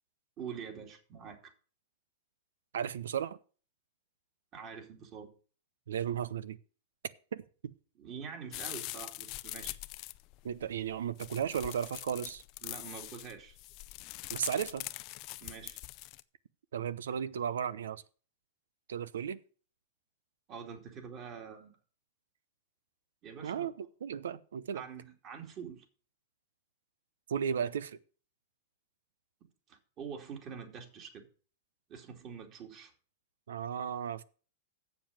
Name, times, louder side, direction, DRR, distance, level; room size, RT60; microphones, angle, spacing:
voice 1, 0.4-1.5 4.5-5.3 8.0-9.8 12.6-13.6 15.4-15.8 20.5-21.7 23.2-23.7 24.7-25.8 29.7-31.3 31.9-32.9, right 7 dB, 35° right, 2.8 m, -45 dB
voice 2, 2.7-3.4 5.9-6.6 7.3-7.4 10.4-12.4 14.3-14.9 16.7-18.0 18.9-19.4 23.4-24.8 27.3-28.0 33.5-34.2, right 8 dB, 85° right, 0.7 m, -35 dB
sound 1, 8.5-16.2, left 19 dB, 45° left, 0.5 m, -43 dB
7.6 x 6.9 x 7.5 m
hypercardioid pair, 130°, 0 cm